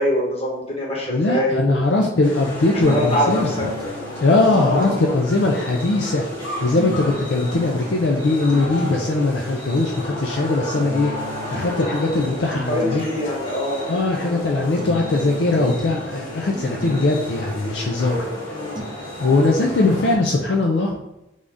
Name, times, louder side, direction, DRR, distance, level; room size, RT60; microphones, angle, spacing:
voice 1, 0.0-1.8 2.7-3.7 4.6-5.1 12.7-13.8 14.2-14.5 17.0-17.1 18.5-18.8, equal, 30° left, -4 dB, 1.0 m, -24 dB
voice 2, 1.1-3.5 4.2-6.2 6.6-11.1 11.5-13.0 13.9-18.3 19.2-20.9, left 2 dB, 60° left, 0 dB, 0.4 m, -20 dB
sound 1, 2.2-20.2, left 1 dB, 80° left, 1.4 m, -32 dB
sound 2, 2.8-18.8, left 1 dB, 25° right, 0.4 m, -37 dB
3.5 x 2.6 x 3.5 m, 0.91 s
head